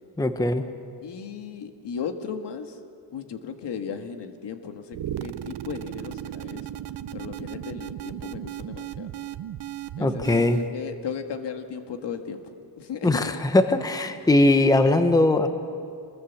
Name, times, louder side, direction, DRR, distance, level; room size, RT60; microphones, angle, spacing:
voice 1, 0.2-0.6 10.0-10.6 13.0-15.5, left 2 dB, 10° left, 8 dB, 0.9 m, -20 dB
voice 2, 1.0-2.8 3.1-6.7 7.1-9.1 10.0-13.4, left 6 dB, 70° left, 6 dB, 1.7 m, -36 dB
sound 1, 4.9-10.7, right 11 dB, 70° right, 0.8 m, -36 dB
26.5 x 21.5 x 7.2 m, 2.4 s
wide cardioid pair, 175°, 43 cm